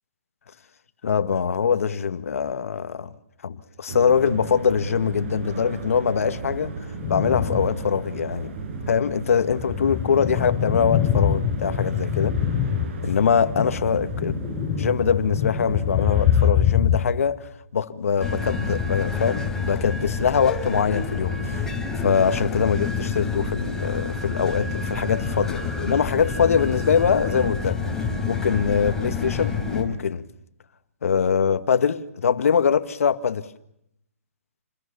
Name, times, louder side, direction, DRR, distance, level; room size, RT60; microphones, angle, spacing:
voice 1, 1.0-3.1 3.4-6.8 7.1-8.5 8.9-12.4 13.0-14.3 14.7-21.7 22.0-27.8 28.3-30.2 31.0-33.5, left 6 dB, 70° left, 2.0 m, -23 dB
sound 1, 3.9-16.5, right 3 dB, 50° right, 7.2 m, -34 dB
sound 2, 7.0-7.9 8.3-8.4 9.1-17.0, left 9 dB, 25° left, 6.6 m, -24 dB
sound 3, 18.2-29.8, left 4 dB, 5° left, 5.3 m, -28 dB
29.5 x 21.5 x 7.0 m
hypercardioid pair, 150°, 8 cm